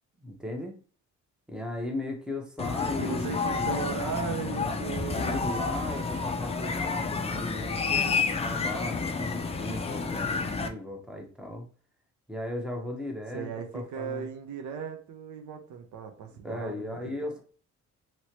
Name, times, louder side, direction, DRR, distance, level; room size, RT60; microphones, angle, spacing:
voice 1, 0.2-0.7 1.5-3.3 3.6-3.7 5.1-11.7 12.3-14.3 16.4-17.4, left 1 dB, 5° right, 2 dB, 0.9 m, -37 dB
sound 1, 2.6-10.7, left 4 dB, 20° left, 0.4 m, -30 dB
voice 2, 3.0-5.5 13.3-17.4, right 6 dB, 75° right, 5 dB, 0.7 m, -37 dB
3.0 x 2.9 x 2.9 m, 0.41 s
cardioid pair, 90°, 30 cm